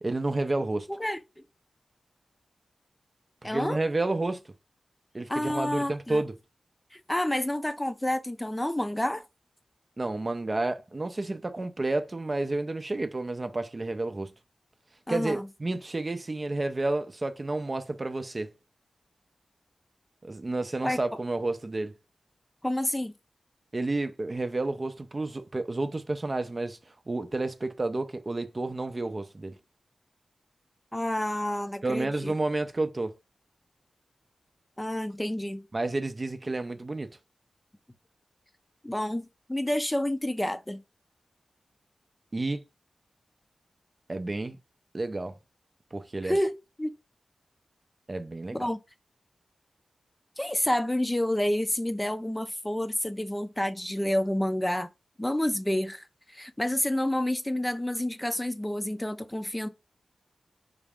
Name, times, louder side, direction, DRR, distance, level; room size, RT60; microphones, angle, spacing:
voice 1, 0.0-0.9 3.4-4.4 5.1-6.3 10.0-14.3 15.1-18.5 20.2-21.9 23.7-26.8 27.1-29.6 31.8-33.1 35.7-37.1 42.3-42.6 44.1-44.6 44.9-45.4 45.9-46.4 48.1-48.7, right 2 dB, 35° right, 0.5 m, -30 dB
voice 2, 0.9-1.2 3.4-3.8 5.3-6.2 6.9-9.2 15.1-15.5 20.8-21.0 22.6-23.1 30.9-32.3 34.8-35.6 38.8-40.8 46.2-46.9 48.5-48.8 50.4-54.9 55.2-59.7, left 1 dB, 15° left, 0.5 m, -29 dB
4.0 x 2.4 x 3.4 m
cardioid pair, 60°, 0 cm